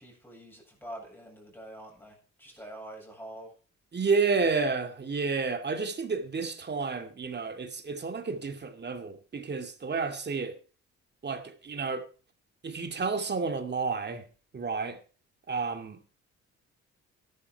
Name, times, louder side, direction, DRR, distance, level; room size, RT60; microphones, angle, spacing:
voice 1, 0.0-3.5, right 1 dB, 5° left, 7.8 m, -45 dB
voice 2, 3.9-10.6 11.2-12.1 12.6-14.3 14.5-15.0 15.5-16.0, right 4 dB, 35° right, 2.5 m, -30 dB
13.0 x 11.5 x 4.7 m
cardioid pair, 90°, 30 cm